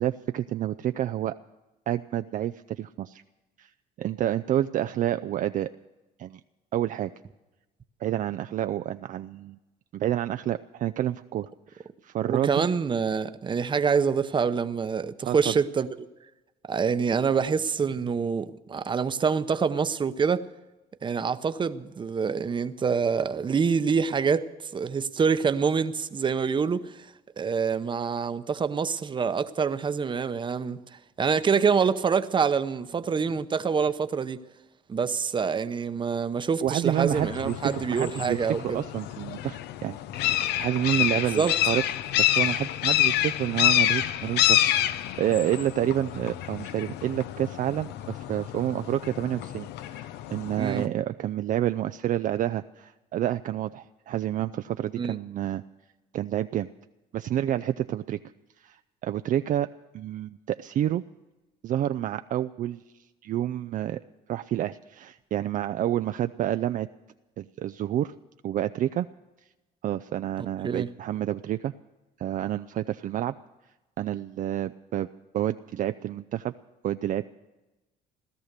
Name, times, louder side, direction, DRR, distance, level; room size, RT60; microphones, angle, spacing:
voice 1, 0.0-1.4 1.9-3.2 3.6-3.7 4.0-5.7 6.2-6.4 6.7-7.1 8.0-9.6 9.9-12.7 15.3-15.5 36.6-41.8 42.2-55.6 56.1-56.7 57.1-58.2 58.6-58.8 59.0-59.7 59.9-61.0 61.6-62.8 63.2-64.0 64.3-66.9 67.4-68.1 68.4-69.1 69.8-71.7 72.2-73.3 74.0-75.1 75.3-76.5 76.8-77.2, right 12 dB, 50° right, 0.4 m, -29 dB
voice 2, 12.3-15.9 16.7-20.4 21.0-27.1 27.4-30.8 31.2-34.4 34.9-38.8 41.3-41.6 50.6-50.8 55.0-55.1 70.6-70.9, right 6 dB, 30° right, 0.8 m, -26 dB
sound 1, 37.1-50.9, left 12 dB, 80° left, 0.7 m, -28 dB
17.0 x 12.5 x 6.7 m
cardioid pair, 110°, 17 cm